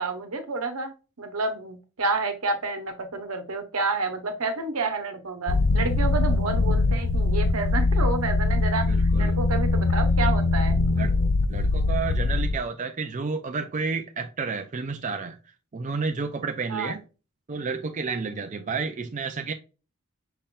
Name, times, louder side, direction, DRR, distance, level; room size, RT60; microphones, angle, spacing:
voice 1, 0.0-10.8 16.7-17.0, right 3 dB, 85° right, 1.0 m, -29 dB
sound 1, 5.5-12.6, left 3 dB, 70° left, 0.5 m, -22 dB
voice 2, 8.9-9.4 10.9-11.1 11.5-15.4 15.7-17.0 17.5-19.5, right 4 dB, 35° right, 0.5 m, -31 dB
5.5 x 3.7 x 2.4 m
head